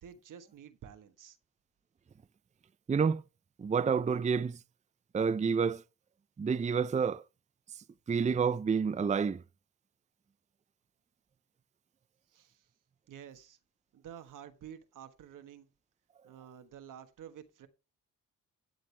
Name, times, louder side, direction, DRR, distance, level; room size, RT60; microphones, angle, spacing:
voice 1, 0.0-1.4 12.3-12.7 13.1-13.6 13.9-15.7 16.2-17.7, right 9 dB, 80° right, 1.4 m, -50 dB
voice 2, 2.9-3.2 3.6-4.6 5.1-5.8 6.4-7.2 8.1-9.4, right 6 dB, 25° right, 0.5 m, -29 dB
12.5 x 8.0 x 3.3 m
cardioid pair, 65°, 31 cm